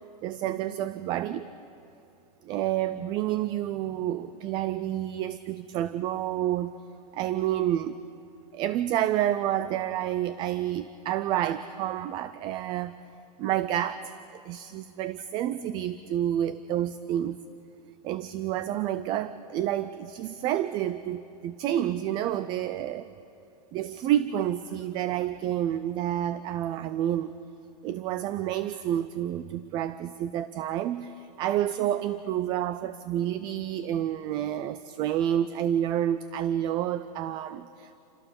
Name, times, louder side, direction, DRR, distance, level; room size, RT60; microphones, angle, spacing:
voice 1, 0.2-1.5 2.4-6.7 7.1-8.0 8.5-12.9 13.4-17.4 18.0-23.1 23.7-27.4 27.8-38.0, right 11 dB, 20° right, 14 dB, 0.4 m, -29 dB
28.0 x 15.5 x 7.0 m, 2.7 s
supercardioid pair, 155°, 20 cm